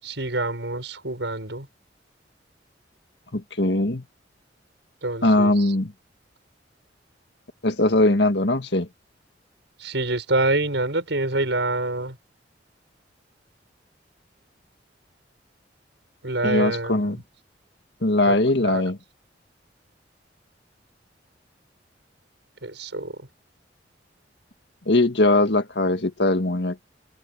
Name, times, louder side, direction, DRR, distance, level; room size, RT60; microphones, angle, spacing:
voice 1, 0.0-1.7 5.0-5.7 9.8-12.2 16.2-17.1 18.3-18.4 18.6-18.8 22.6-23.2, right 2 dB, 80° right, 6.7 m, -26 dB
voice 2, 3.3-4.0 5.2-5.9 7.6-8.9 16.4-17.2 18.0-19.0 24.9-26.8, left 2 dB, 70° left, 1.9 m, -20 dB
open air
head